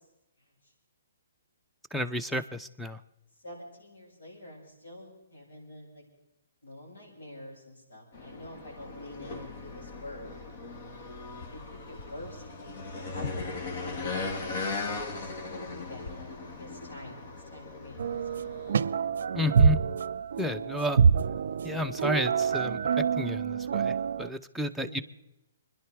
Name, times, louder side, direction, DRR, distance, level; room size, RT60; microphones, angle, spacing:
voice 1, 1.9-3.0 19.3-19.8 20.4-21.0 21.6-25.0, left 1 dB, ahead, 10 dB, 0.7 m, -32 dB
voice 2, 3.4-6.0 6.6-10.6 11.5-18.2 24.8-25.0, left 1 dB, 80° left, -3 dB, 7.4 m, -47 dB
sound 1, 8.1-18.8, left 3 dB, 50° left, 2.0 m, -38 dB
sound 2, 18.0-24.3, right 6 dB, 65° right, 0.4 m, -26 dB
25.0 x 11.0 x 4.8 m, 0.90 s
hypercardioid pair, 140°, 0 cm